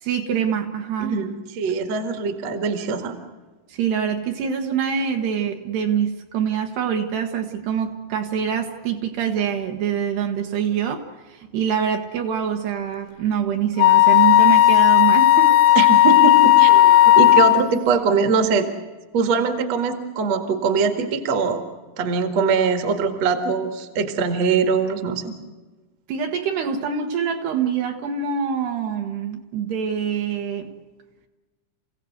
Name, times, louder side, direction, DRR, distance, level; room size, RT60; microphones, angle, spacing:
voice 1, 0.0-1.3 3.7-15.6 26.1-30.7, right 7 dB, 70° right, 4 dB, 3.0 m, -25 dB
voice 2, 1.0-3.1 15.8-18.7 19.1-21.6 22.0-25.3, right 5 dB, 50° right, 7 dB, 2.2 m, -22 dB
Wind instrument woodwind instrument, 13.8-17.6, left 13 dB, 80° left, 2.2 m, -13 dB
28.5 x 16.5 x 8.0 m, 1.2 s
omnidirectional pair, 5.4 m